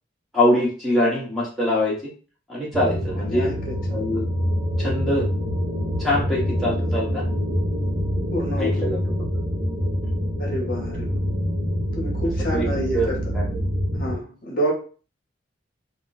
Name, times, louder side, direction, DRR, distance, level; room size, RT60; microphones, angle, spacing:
voice 1, 0.3-2.1 2.5-3.5 3.9-4.3 4.8-5.2 6.0-7.2 8.6-9.0 12.5-12.7 12.9-13.5, left 1 dB, ahead, -7 dB, 0.8 m, -23 dB
sound 1, 2.7-14.2, equal, 75° right, 0.9 m, -26 dB
voice 2, 3.3-3.7 8.3-8.7 10.4-11.2 12.0-13.2 13.9-14.7, right 1 dB, 45° left, -1 dB, 0.8 m, -28 dB
2.3 x 2.2 x 3.9 m, 0.39 s
head